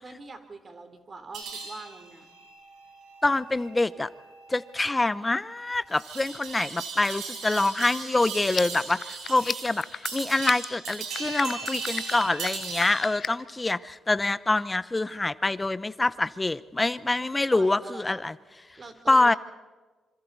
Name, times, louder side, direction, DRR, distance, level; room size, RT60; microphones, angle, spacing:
voice 1, 0.0-2.3 17.2-18.2 18.8-19.4, right 3 dB, 45° right, 8 dB, 3.5 m, -43 dB
sound 1, 1.3-13.2, right 5 dB, 75° right, 5.2 m, -38 dB
voice 2, 3.2-4.1 4.5-18.3 19.1-19.3, left 2 dB, 20° left, 17 dB, 0.8 m, -25 dB
sound 2, 8.4-13.5, left 6 dB, 55° left, 0.9 m, -33 dB
26.5 x 25.5 x 4.1 m, 1.3 s
supercardioid pair, 50°, 0 cm